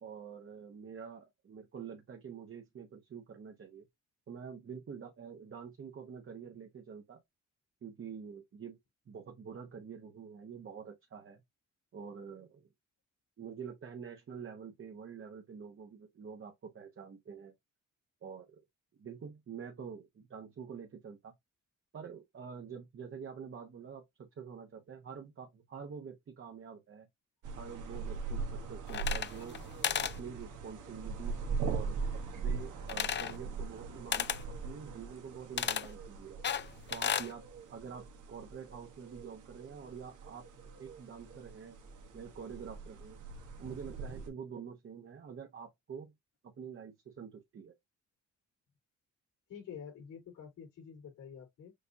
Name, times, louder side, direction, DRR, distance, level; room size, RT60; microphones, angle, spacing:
voice 1, 0.0-3.9 4.3-7.2 7.8-8.8 9.1-11.4 11.9-12.7 13.4-17.5 18.2-18.6 18.9-21.3 21.9-27.1 27.6-29.6 30.0-32.0 32.3-36.4 36.9-40.4 40.8-41.8 42.1-43.2 43.6-46.1 46.4-47.7, right 6 dB, 45° right, 1.0 m, -47 dB
sound 1, 27.4-44.3, right 5 dB, 80° right, 1.2 m, -41 dB
sound 2, 28.9-29.6 29.8-30.2 32.9-33.4 34.1-34.4 35.6-35.9 36.4-37.3, left 8 dB, 35° left, 0.5 m, -33 dB
voice 2, 49.5-51.7, left 7 dB, 85° left, 3.7 m, -48 dB
6.6 x 2.7 x 2.6 m
cardioid pair, 100°, 30 cm